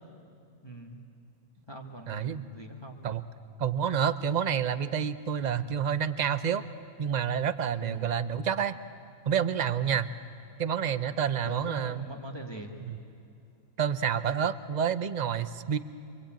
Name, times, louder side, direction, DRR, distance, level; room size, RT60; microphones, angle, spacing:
voice 1, 0.6-1.0 1.7-3.0 7.8-8.1 11.4-12.7, right 1 dB, 20° left, 0 dB, 1.9 m, -42 dB
voice 2, 2.1-2.4 3.0-3.2 3.6-6.6 7.0-8.8 9.3-10.1 10.6-12.0 12.8-13.0 13.8-15.8, right 8 dB, 40° right, 13 dB, 0.7 m, -28 dB
26.5 x 24.5 x 8.9 m, 2.7 s
omnidirectional pair, 1.5 m